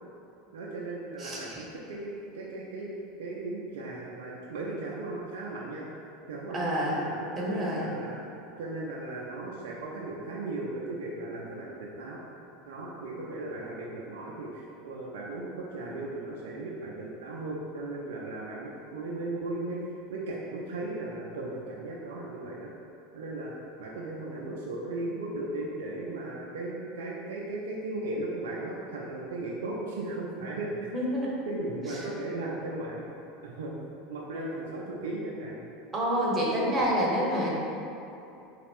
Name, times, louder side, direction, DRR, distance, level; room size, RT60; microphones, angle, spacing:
voice 1, 0.5-2.9 3.2-5.9 6.3-8.2 8.6-12.2 12.6-19.8 20.1-22.7 23.1-23.5 23.8-30.9 31.2-33.0 33.4-33.8 34.1-35.6, right 2 dB, 65° right, -4 dB, 0.4 m, -36 dB
voice 2, 1.2-1.6 6.5-7.0 7.3-7.9 30.9-31.4 35.9-37.5, equal, 25° right, -4 dB, 0.8 m, -28 dB
3.9 x 2.4 x 3.5 m, 2.8 s
figure-of-eight pair, 75°, 0 cm